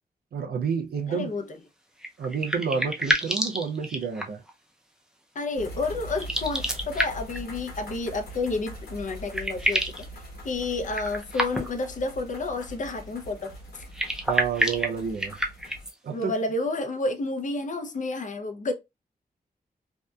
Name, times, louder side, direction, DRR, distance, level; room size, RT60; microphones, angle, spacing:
voice 1, 0.3-1.3 2.2-4.4 14.3-15.4 16.0-16.3, right 6 dB, 80° right, 0.4 m, -29 dB
voice 2, 1.1-1.5 5.4-9.9 10.4-13.8 16.1-18.7, left 3 dB, 55° left, 0.5 m, -30 dB
sound 1, 2.0-4.5 6.1-7.4 8.8-8.9 9.1-10.1 10.9-11.9 13.8-15.9, equal, 5° right, 0.5 m, -28 dB
sound 2, 5.6-15.9, equal, 90° left, 1.0 m, -42 dB
2.7 x 2.1 x 2.2 m
wide cardioid pair, 90°, 16 cm